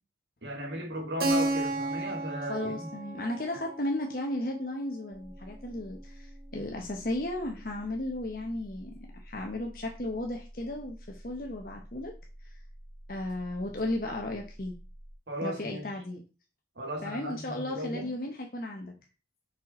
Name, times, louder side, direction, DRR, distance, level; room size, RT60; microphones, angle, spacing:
voice 1, 0.4-2.9 15.3-15.9 16.8-18.1, equal, 80° right, 2.1 m, -36 dB
Keyboard (musical), 1.2-5.7, right 2 dB, 55° right, 0.9 m, -34 dB
voice 2, 2.4-12.1 12.4-12.6 13.1-14.7 15.4-16.2 17.0-18.9, left 1 dB, 50° left, 0.9 m, -35 dB
sound 1, 5.1-15.1, equal, ahead, 0.8 m, -49 dB
5.8 x 5.2 x 4.2 m
head